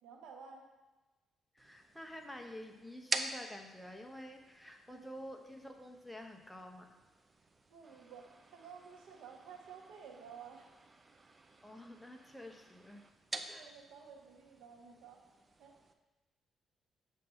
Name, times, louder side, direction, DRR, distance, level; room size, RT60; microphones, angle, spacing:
voice 1, 0.0-0.7 4.9-5.0 7.7-10.7 13.5-15.2 15.6-15.8, right 6 dB, 90° right, 1 dB, 1.0 m, -53 dB
voice 2, 1.5-6.9 11.6-13.0 13.5-13.7, left 1 dB, 5° left, 3 dB, 0.8 m, -49 dB
sound 1, 1.6-15.9, right 3 dB, 25° right, 0.5 m, -47 dB
7.2 x 2.7 x 5.6 m, 1.1 s
cardioid pair, 90°, 0 cm